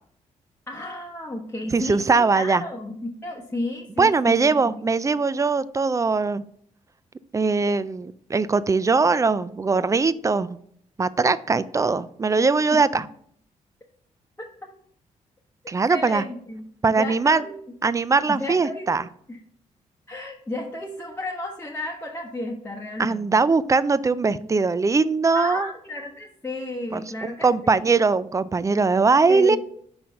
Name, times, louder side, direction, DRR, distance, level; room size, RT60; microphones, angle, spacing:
voice 1, 0.7-4.8 12.7-13.0 14.4-14.5 15.9-16.7 17.0-17.5 18.3-18.9 19.3-19.4 20.1-23.3 25.3-27.8 29.3-29.6, left 1 dB, 15° left, -2 dB, 1.0 m, -33 dB
voice 2, 1.7-2.6 4.0-6.4 7.3-10.5 11.0-13.1 15.7-16.2 16.8-17.4 17.8-19.0 23.0-25.7 26.9-29.6, right 4 dB, 25° right, 16 dB, 0.3 m, -21 dB
5.5 x 4.4 x 5.1 m, 0.65 s
cardioid pair, 85°, 14 cm